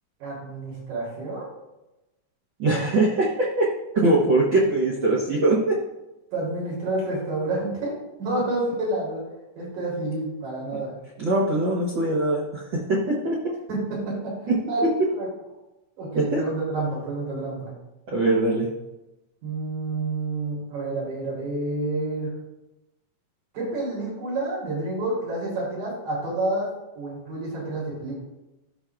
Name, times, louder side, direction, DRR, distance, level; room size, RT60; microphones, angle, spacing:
voice 1, 0.2-1.5 6.3-9.2 9.6-10.9 13.7-14.8 15.1-15.3 16.0-17.7 19.4-22.3 23.5-26.7 27.0-28.2, right 2 dB, 70° right, -5 dB, 5.0 m, -29 dB
voice 2, 2.6-5.8 11.2-13.4 14.5-14.9 16.1-16.4 18.1-18.7, right 2 dB, 85° right, -5 dB, 1.0 m, -22 dB
14.5 x 5.8 x 2.5 m, 0.96 s
omnidirectional pair, 3.9 m